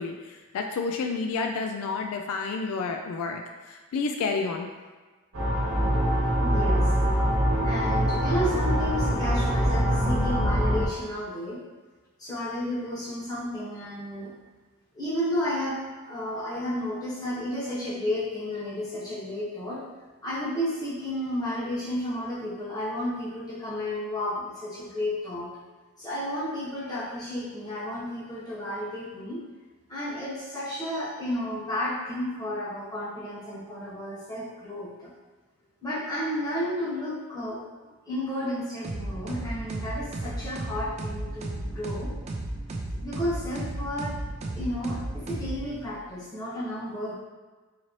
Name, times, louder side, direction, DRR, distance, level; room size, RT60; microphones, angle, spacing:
voice 1, 0.0-4.7, left 4 dB, 80° left, 4 dB, 0.3 m, -30 dB
sound 1, 5.3-10.9, equal, 75° right, 1.0 m, -24 dB
voice 2, 6.4-6.9 7.6-11.6 12.2-14.3 14.9-15.8 16.1-19.8 20.2-25.5 26.0-29.4 29.9-35.1 35.8-37.6 38.0-42.1 43.0-47.1, left 1 dB, 20° left, -9 dB, 1.0 m, -32 dB
sound 2, 38.8-46.0, right 1 dB, 30° right, 0.3 m, -34 dB
3.9 x 2.8 x 3.0 m, 1.3 s
head